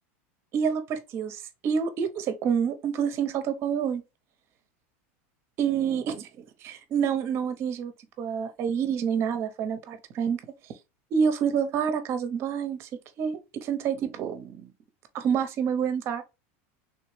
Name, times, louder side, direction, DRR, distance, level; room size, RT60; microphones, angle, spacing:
voice 1, 0.5-4.0 5.6-6.3 6.6-10.4 11.1-12.9 13.2-14.7 15.1-16.2, right 7 dB, 35° right, 0.6 m, -28 dB
3.2 x 3.1 x 3.1 m
supercardioid pair, 145°, 7 cm